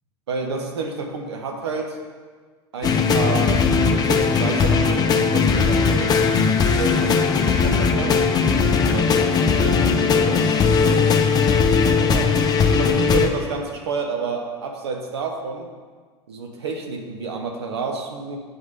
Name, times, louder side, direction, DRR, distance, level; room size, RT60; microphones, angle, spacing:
voice 1, 0.3-2.0 2.7-8.2 8.7-12.3 12.7-15.7 16.3-18.4, right 4 dB, 70° right, 2 dB, 1.0 m, -30 dB
sound 1, 2.8-13.3, left 5 dB, 30° left, 0.6 m, -18 dB
9.2 x 3.2 x 5.1 m, 1.5 s
figure-of-eight pair, 75°, 14 cm